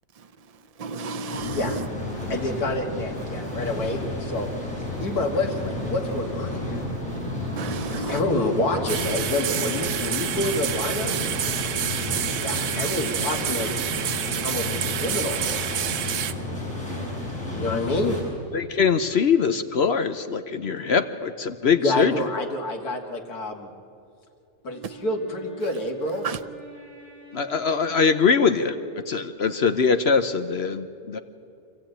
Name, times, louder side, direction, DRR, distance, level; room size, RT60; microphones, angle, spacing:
voice 1, 0.2-1.9 2.2-2.3 3.4-3.6 4.9-5.1 6.7-8.2 9.8-9.9 26.2-26.4, right 3 dB, 50° right, 0.4 m, -35 dB
sound 1, 1.3-18.2, left 1 dB, 5° left, 7.1 m, -31 dB
voice 2, 2.3-4.5 5.0-6.8 7.9-11.2 12.4-13.7 14.1-15.4 17.6-18.2 21.8-23.7 24.6-26.3, left 2 dB, 85° left, 2.4 m, -28 dB
sound 2, 8.9-16.3, right 9 dB, 90° right, 1.3 m, -28 dB
voice 3, 18.5-22.3 27.3-28.8 29.1-31.2, left 5 dB, 50° left, 0.9 m, -22 dB
Wind instrument woodwind instrument, 24.6-29.4, right 5 dB, 25° left, 6.4 m, -45 dB
26.0 x 14.5 x 9.0 m
omnidirectional pair, 1.6 m